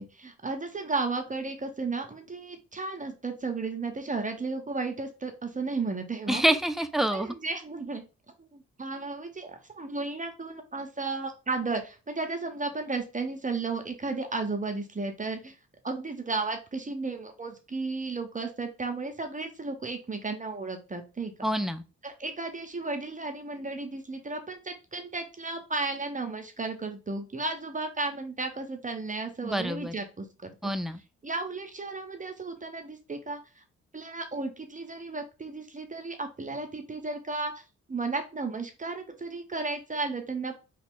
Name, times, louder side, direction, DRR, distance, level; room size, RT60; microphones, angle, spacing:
voice 1, 0.0-6.4 7.1-8.0 8.4-15.6 15.8-21.5 22.0-30.6 31.2-33.6 33.9-37.6 37.9-40.6, right 3 dB, 25° right, 5 dB, 0.7 m, -34 dB
voice 2, 6.3-7.3 21.4-21.8 29.4-29.9 30.6-31.0, right 1 dB, ahead, 9 dB, 0.3 m, -27 dB
3.0 x 2.4 x 3.5 m, 0.31 s
supercardioid pair, 55°, 32 cm